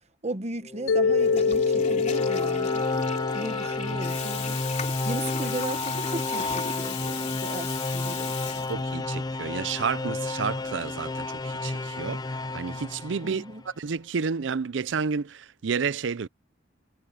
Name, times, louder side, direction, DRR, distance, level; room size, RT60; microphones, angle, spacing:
voice 1, 0.2-2.9 3.3-4.6 5.0-8.7 13.2-13.6, right 2 dB, 35° right, 1.1 m, -36 dB
sound 1, 0.6-13.7, left 2 dB, 20° left, 0.6 m, -31 dB
Mallet percussion, 0.9-5.0, left 5 dB, 85° left, 0.4 m, -27 dB
Water tap faucet / Toilet flush, 1.1-9.1, left 7 dB, 40° left, 3.1 m, -37 dB
voice 2, 8.7-16.3, right 5 dB, 70° right, 0.5 m, -31 dB
head